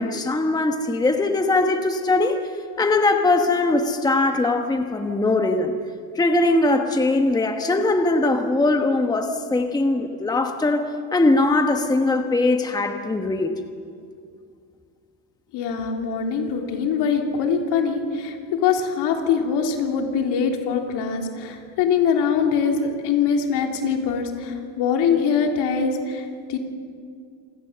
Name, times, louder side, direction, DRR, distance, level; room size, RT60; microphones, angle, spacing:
voice 1, 0.0-2.4 2.8-5.7 6.1-13.5, left 2 dB, 10° left, 5 dB, 1.1 m, -21 dB
voice 2, 15.5-26.6, left 6 dB, 70° left, 2 dB, 3.2 m, -23 dB
27.0 x 17.0 x 6.8 m, 2.3 s
cardioid pair, 140°, 42 cm